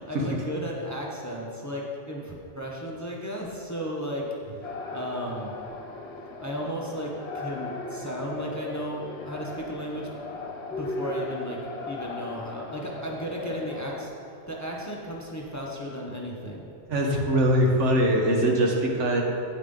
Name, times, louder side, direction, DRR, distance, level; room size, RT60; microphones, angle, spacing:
voice 1, 0.0-4.3 4.9-5.5 6.4-10.1 10.6-14.1 14.5-16.7, equal, 15° left, -2 dB, 0.9 m, -34 dB
sound 1, 4.6-14.1, left 3 dB, 65° left, 1.1 m, -37 dB
voice 2, 16.9-19.2, equal, 80° right, 0 dB, 1.5 m, -22 dB
9.2 x 8.4 x 3.7 m, 2.8 s
omnidirectional pair, 1.2 m